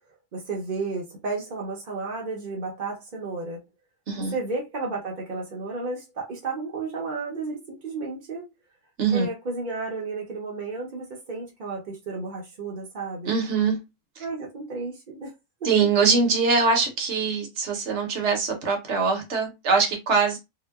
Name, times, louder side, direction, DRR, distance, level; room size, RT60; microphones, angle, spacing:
voice 1, 0.3-3.6 4.3-8.4 9.1-13.4 14.2-15.3, right 3 dB, 45° right, 0.7 m, -32 dB
voice 2, 13.3-13.8 14.2-14.3 15.6-20.4, right 4 dB, 65° right, 1.0 m, -23 dB
2.9 x 2.0 x 2.2 m
omnidirectional pair, 1.3 m